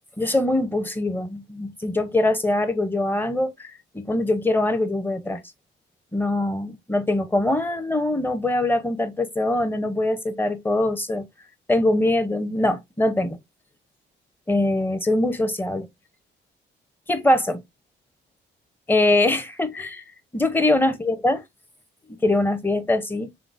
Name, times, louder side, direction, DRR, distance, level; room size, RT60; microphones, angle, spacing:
voice 1, 0.2-5.4 6.1-11.3 11.7-13.4 14.5-15.9 17.1-17.6 18.9-20.0 20.3-21.4 22.2-23.3, left 2 dB, 10° left, 0.7 m, -23 dB
3.8 x 3.8 x 2.5 m
cardioid pair, 90°, 20 cm